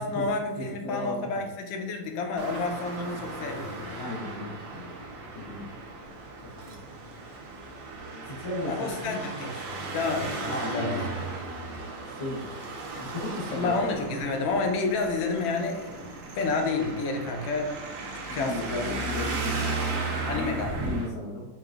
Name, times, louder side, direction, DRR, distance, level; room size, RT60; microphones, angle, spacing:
voice 1, 0.0-4.0 8.6-9.6 9.9-11.0 13.5-17.8 18.3-18.9 20.3-20.8, left 3 dB, 80° left, 3 dB, 1.4 m, -30 dB
voice 2, 0.6-1.3 4.0-5.0 5.3-5.8 6.6-6.7 8.3-9.2 10.5-11.1 12.1-12.5 13.0-13.7 14.1-14.2 18.3-21.5, left 1 dB, 40° left, -6 dB, 0.4 m, -35 dB
Traffic noise roadway noise, 2.4-21.1, right 3 dB, 80° right, 1.4 m, -36 dB
4.7 x 2.6 x 2.4 m, 1.1 s
omnidirectional pair, 2.2 m